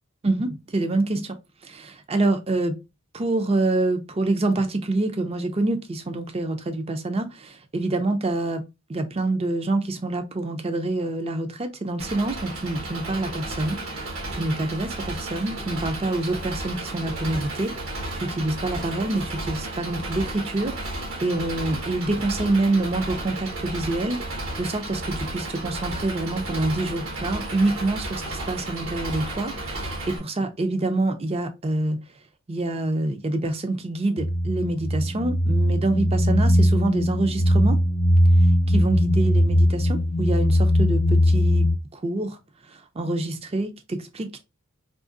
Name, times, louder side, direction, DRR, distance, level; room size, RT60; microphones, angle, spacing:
voice 1, 0.2-1.4 1.6-2.8 3.1-8.6 8.9-32.0 32.5-37.8 38.7-42.4 42.7-44.4, right 2 dB, 25° right, 0.4 m, -26 dB
Engine, 12.0-30.2, right 2 dB, 75° right, 1.3 m, -33 dB
sound 1, 34.2-41.8, equal, 60° left, 0.8 m, -20 dB
3.7 x 2.8 x 2.5 m
head